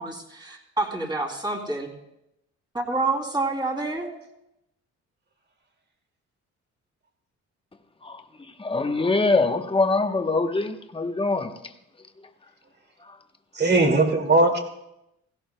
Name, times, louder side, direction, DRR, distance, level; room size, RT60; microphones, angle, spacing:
voice 1, 0.0-1.9 2.7-4.1, right 3 dB, 15° right, 2.9 m, -28 dB
voice 2, 8.0-11.6 13.0-13.2, left 3 dB, 20° left, 1.0 m, -24 dB
voice 3, 13.6-14.6, right 2 dB, 35° right, 2.3 m, -19 dB
17.0 x 16.0 x 2.2 m
cardioid pair, 90°, 30 cm